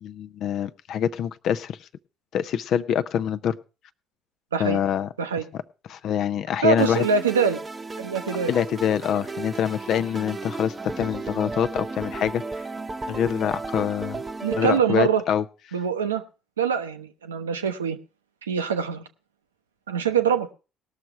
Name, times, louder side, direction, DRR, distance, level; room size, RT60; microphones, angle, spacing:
voice 1, 0.0-1.8 2.3-3.6 4.6-5.1 5.9-7.1 8.5-12.4 13.1-14.2 14.5-15.4, left 9 dB, 55° left, 12 dB, 0.6 m, -25 dB
voice 2, 6.6-7.6 8.0-8.5 14.4-15.2 15.7-16.2 16.6-18.0 18.4-19.0 19.9-20.5, right 6 dB, 85° right, 8 dB, 0.7 m, -24 dB
sound 1, 6.8-14.8, right 3 dB, 25° right, 0.8 m, -34 dB
18.5 x 6.6 x 4.4 m, 0.32 s
figure-of-eight pair, 50°, 0 cm